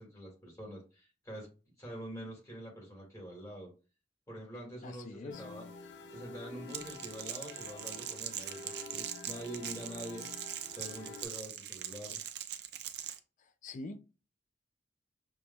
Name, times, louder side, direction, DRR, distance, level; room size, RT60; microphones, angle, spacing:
voice 1, 0.0-1.5 1.8-3.7 4.3-5.7 6.1-12.2, right 1 dB, 20° left, 1.9 m, -45 dB
voice 2, 4.8-5.4 13.4-14.0, left 3 dB, 45° left, 0.4 m, -44 dB
sound 1, 5.3-11.2, left 4 dB, 90° left, 0.6 m, -49 dB
Crackle, 6.7-13.2, right 10 dB, 65° right, 0.5 m, -42 dB
6.3 x 2.9 x 2.2 m
head